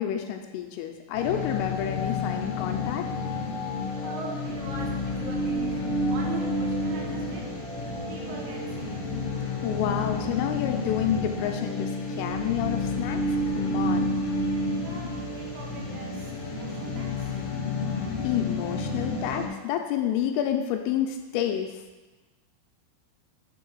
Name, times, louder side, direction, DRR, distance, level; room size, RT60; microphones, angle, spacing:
voice 1, 0.0-3.1 9.6-11.9 12.2-13.2 13.6-14.1 18.2-21.7, left 10 dB, 85° left, 4 dB, 3.1 m, -29 dB
sound 1, 1.1-19.5, left 2 dB, 60° left, 2.3 m, -30 dB
voice 2, 4.0-7.6 8.1-9.0 14.8-17.3, right 3 dB, 85° right, -1 dB, 4.1 m, -41 dB
7.7 x 7.4 x 4.6 m, 1.2 s
omnidirectional pair, 6.0 m